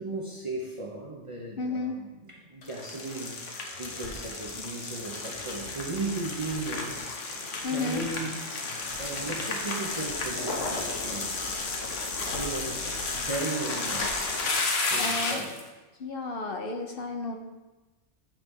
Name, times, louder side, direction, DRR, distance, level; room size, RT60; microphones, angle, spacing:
voice 1, 0.0-7.1 7.7-8.4 9.0-11.6 12.2-14.4 14.9-15.6, right 2 dB, 30° right, -2 dB, 0.8 m, -36 dB
voice 2, 1.6-2.0 7.6-8.1 15.0-15.4 16.0-17.4, left 3 dB, 55° left, 3 dB, 0.9 m, -32 dB
sound 1, 2.6-15.6, left 3 dB, 90° left, 1.3 m, -32 dB
8.7 x 3.4 x 5.3 m, 1.2 s
omnidirectional pair, 1.2 m